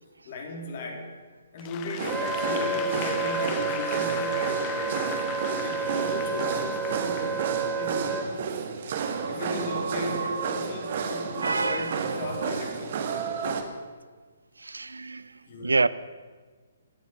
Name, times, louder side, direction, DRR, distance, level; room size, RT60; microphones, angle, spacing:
voice 1, 0.2-1.1 1.5-5.0 5.6-7.5 7.8-8.4 9.3-13.0 15.5-15.9, left 2 dB, 45° left, 3.6 m, -36 dB
Applause / Crowd, 1.6-8.0, left 11 dB, 25° left, 0.8 m, -39 dB
sound 1, 2.0-13.6, right 6 dB, 45° right, 1.8 m, -31 dB
Wind instrument woodwind instrument, 2.1-8.3, right 4 dB, 5° right, 1.2 m, -30 dB
voice 2, 11.4-12.0 14.6-15.3 15.6-15.9, right 3 dB, 75° right, 0.5 m, -27 dB
25.0 x 9.0 x 6.0 m
figure-of-eight pair, 130°, 0 cm